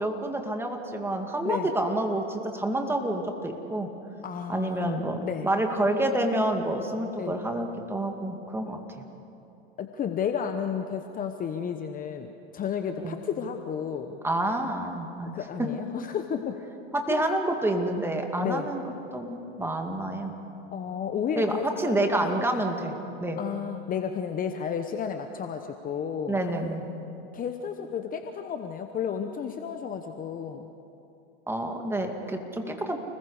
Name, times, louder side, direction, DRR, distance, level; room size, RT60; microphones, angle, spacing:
voice 1, 0.0-3.9 4.5-9.0 13.0-13.2 14.2-15.3 16.9-18.8 19.1-20.3 21.4-22.9 23.2-23.4 26.3-26.9 31.5-33.0, right 1 dB, 5° right, 3 dB, 2.2 m, -28 dB
voice 2, 4.2-5.5 7.2-7.3 9.8-14.2 15.3-16.6 17.1-17.2 18.4-18.7 20.7-22.4 23.4-26.4 27.3-30.7, left 7 dB, 25° left, 6 dB, 1.1 m, -32 dB
30.0 x 20.5 x 5.0 m, 2.8 s
hypercardioid pair, 115°, 32 cm